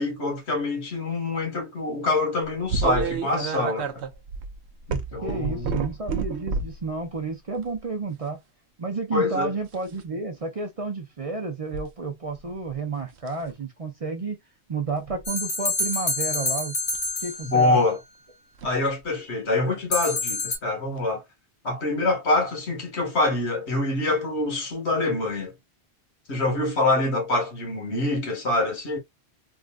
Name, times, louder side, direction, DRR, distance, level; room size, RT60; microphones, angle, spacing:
voice 1, 0.0-4.0 4.9-5.8 9.1-9.5 17.4-18.0 18.6-21.2 21.6-25.5 26.3-29.0, left 2 dB, 80° left, 1.8 m, -25 dB
sound 1, 2.7-6.8 7.5-7.8 9.6-10.0 11.7-11.9 12.4-12.7 13.2-13.5 14.9-15.2 16.9-17.1 18.6-18.7 20.2-20.3 21.0-21.1, right 5 dB, 80° right, 0.9 m, -30 dB
voice 2, 5.2-8.4 8.8-14.4 14.7-16.8 17.2-17.8, right 4 dB, 40° right, 0.6 m, -31 dB
sound 2, 15.3-17.8 19.9-20.6, left 2 dB, 60° left, 1.5 m, -27 dB
3.7 x 2.5 x 2.2 m
omnidirectional pair, 1.1 m